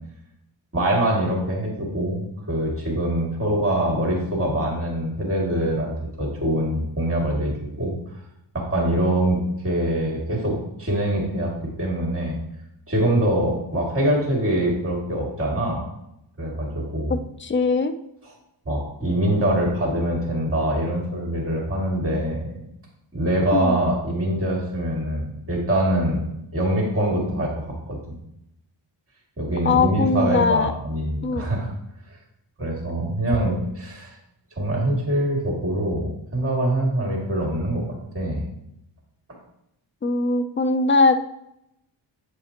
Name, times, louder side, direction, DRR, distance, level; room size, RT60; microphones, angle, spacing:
voice 1, 0.7-5.9 6.2-7.5 7.8-7.9 8.5-11.5 11.8-12.4 12.9-15.8 16.4-17.2 18.7-22.5 23.1-26.3 26.5-28.2 29.4-31.7 32.6-34.1 34.6-37.8 38.1-38.5, right 1 dB, 30° right, -2 dB, 2.4 m, -24 dB
voice 2, 17.1-17.9 23.5-23.8 29.6-30.7 31.2-31.5 40.0-41.2, left 3 dB, 25° left, 10 dB, 0.5 m, -21 dB
7.8 x 5.0 x 2.9 m, 0.80 s
cardioid pair, 75°, 48 cm